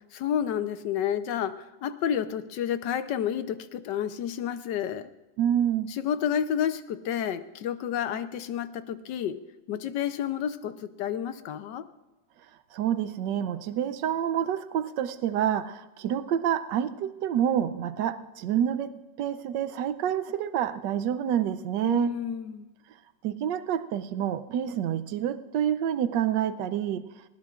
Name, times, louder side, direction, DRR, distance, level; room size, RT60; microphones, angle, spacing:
voice 1, 0.1-5.1 6.0-9.4 9.7-11.9 21.8-22.7, left 9 dB, 80° left, 11 dB, 1.4 m, -30 dB
voice 2, 5.4-5.9 12.7-22.2 23.2-27.0, right 10 dB, 90° right, 12 dB, 1.3 m, -28 dB
20.0 x 17.5 x 2.5 m, 1.1 s
omnidirectional pair, 1.9 m